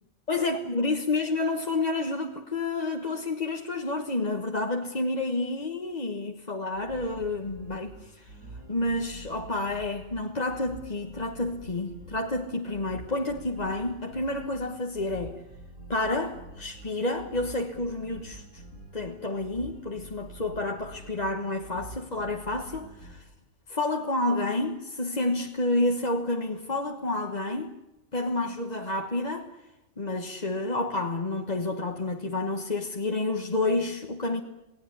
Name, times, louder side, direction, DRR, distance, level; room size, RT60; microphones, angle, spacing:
voice 1, 0.3-8.3 8.7-15.4 15.9-18.6 18.9-23.2 23.7-27.7 28.1-29.5 30.0-34.4, left 2 dB, 30° left, 1.4 m, -29 dB
sound 1, 6.7-23.1, right 2 dB, 90° right, 8.2 m, -47 dB
29.0 x 18.5 x 9.7 m
omnidirectional pair, 1.4 m